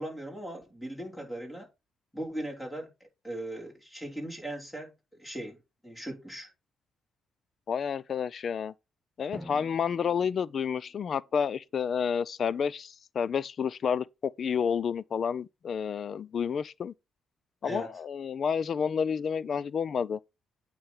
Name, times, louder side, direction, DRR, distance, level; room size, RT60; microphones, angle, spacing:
voice 1, 0.0-1.7 2.1-2.9 3.2-4.9 5.2-6.5 17.6-18.0, right 1 dB, 10° left, 3.4 m, -38 dB
voice 2, 7.7-8.7 9.2-16.9 17.6-20.2, left 7 dB, 50° left, 0.4 m, -30 dB
Drum, 9.3-11.8, equal, 5° right, 1.4 m, -49 dB
8.8 x 3.2 x 5.4 m
cardioid pair, 90°, 0 cm